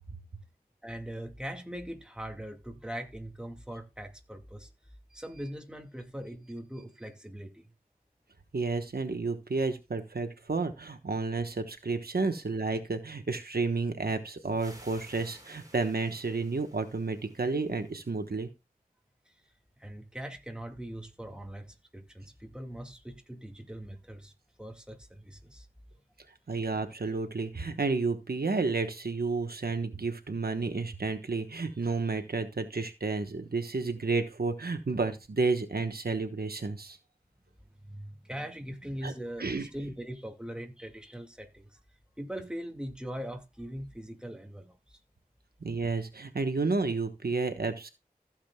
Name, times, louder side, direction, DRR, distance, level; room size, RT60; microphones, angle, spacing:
voice 1, 0.8-4.7 5.1-7.7 19.3-19.4 19.8-24.3 24.6-25.7 37.8-41.8 42.2-45.0, equal, 5° right, 2.1 m, -41 dB
voice 2, 8.5-18.5 26.5-37.0 39.0-39.1 39.4-39.7 45.6-47.9, right 3 dB, 85° right, 1.2 m, -31 dB
sound 1, 14.6-18.2, right 1 dB, 25° right, 3.8 m, -55 dB
15.5 x 7.4 x 2.3 m
wide cardioid pair, 55°, 15 cm